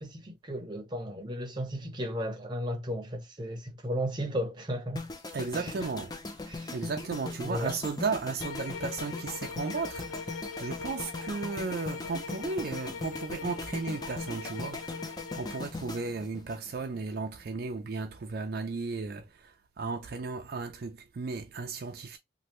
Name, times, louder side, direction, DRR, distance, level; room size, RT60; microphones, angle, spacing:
voice 1, 0.0-5.0 5.5-5.7 6.5-6.8 7.4-7.8, equal, 25° right, 0.7 m, -35 dB
sound 1, 5.0-17.1 17.4-17.7, left 2 dB, 20° left, 0.4 m, -40 dB
voice 2, 5.3-6.2 6.4-22.2, right 4 dB, 50° right, 0.4 m, -35 dB
sound 2, 8.4-15.7, left 5 dB, 80° left, 0.5 m, -42 dB
3.1 x 2.5 x 2.9 m
head